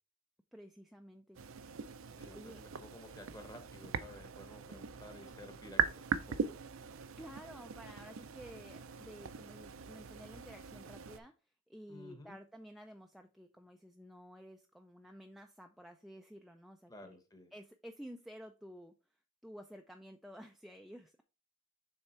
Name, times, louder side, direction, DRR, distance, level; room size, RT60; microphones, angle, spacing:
voice 1, 0.5-1.4 2.3-2.6 7.2-11.3 11.7-17.2 17.5-18.9 19.4-21.2, equal, ahead, 4 dB, 0.3 m, -52 dB
sound 1, 1.3-11.2, right 6 dB, 70° right, 0.5 m, -41 dB
voice 2, 2.2-6.5 11.9-12.4 16.9-17.5, left 1 dB, 20° left, 7 dB, 0.9 m, -54 dB
6.6 x 3.5 x 4.3 m, 0.33 s
head